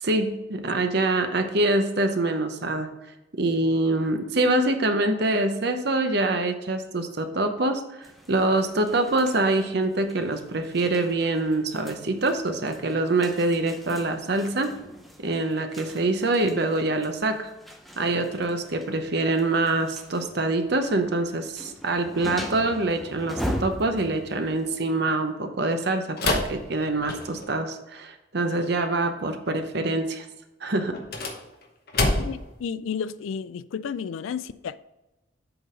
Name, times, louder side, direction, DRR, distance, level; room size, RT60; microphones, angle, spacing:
voice 1, 0.0-2.9 3.4-14.7 15.2-17.5 18.0-30.3 30.6-31.0, right 2 dB, 55° right, 0.8 m, -25 dB
sound 1, 8.0-24.9, equal, ahead, 0.5 m, -40 dB
sound 2, 26.2-27.6 30.9-32.5, left 2 dB, 50° left, 0.9 m, -27 dB
voice 2, 32.1-34.8, left 6 dB, 75° left, 0.3 m, -32 dB
7.9 x 3.9 x 4.9 m
head